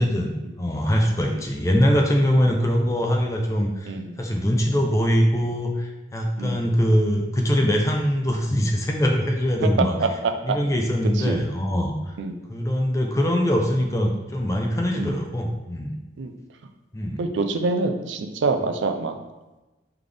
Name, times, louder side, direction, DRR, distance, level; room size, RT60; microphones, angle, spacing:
voice 1, 0.6-3.9 4.2-10.0 10.4-11.9 12.5-16.0 16.9-17.2, equal, 15° left, 2 dB, 0.4 m, -22 dB
voice 2, 3.8-4.2 6.4-6.7 9.6-10.6 11.2-11.4 12.2-12.4 15.0-15.2 16.2-16.3 17.2-19.1, right 3 dB, 80° right, 6 dB, 0.4 m, -26 dB
3.9 x 3.4 x 3.3 m, 1.1 s
head